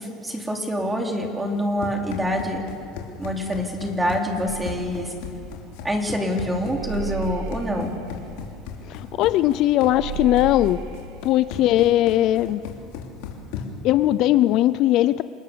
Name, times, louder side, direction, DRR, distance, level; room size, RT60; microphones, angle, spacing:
voice 1, 0.0-2.6 3.2-5.1 5.8-7.9, equal, 10° right, 2 dB, 3.3 m, -26 dB
Run, 1.5-13.9, left 6 dB, 80° left, 3.3 m, -37 dB
sound 1, 4.5-12.0, right 4 dB, 75° right, 1.6 m, -36 dB
voice 2, 8.9-10.8 11.2-12.6 13.8-15.2, left 14 dB, 55° left, 15 dB, 0.5 m, -19 dB
28.0 x 19.0 x 6.9 m, 2.4 s
supercardioid pair, 130°, 0 cm